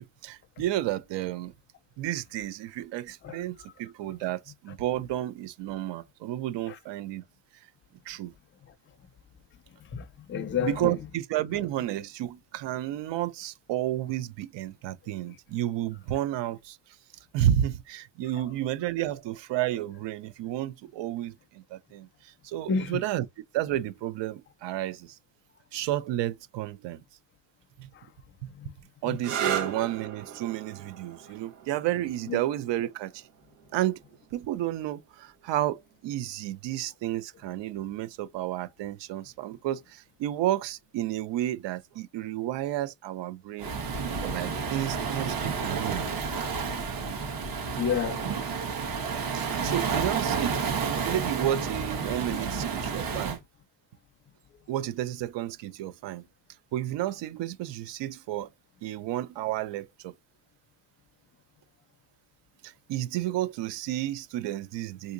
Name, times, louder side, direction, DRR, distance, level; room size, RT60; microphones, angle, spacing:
voice 1, 0.0-1.5 2.0-7.2 8.1-8.3 10.6-16.8 17.3-23.2 23.5-25.2 25.7-27.0 27.8-27.9 29.0-33.2 33.7-34.0 34.3-43.7 44.2-46.1 49.3-53.4 54.7-56.2 56.7-58.5 58.8-60.1 62.6-65.1, right 13 dB, 60° right, 0.6 m, -31 dB
voice 2, 9.8-11.0 22.7-23.0 27.9-28.1 28.4-28.7 29.0-29.2 32.3-32.4 47.7-48.2, left 7 dB, 25° left, 0.5 m, -31 dB
sound 1, 29.1-36.6 37.6-38.1 41.6-42.0, right 9 dB, 80° right, 1.4 m, -38 dB
Waves surf, 43.6-53.4, right 5 dB, 45° right, 1.2 m, -30 dB
3.7 x 2.8 x 2.5 m
cardioid pair, 140°, 49 cm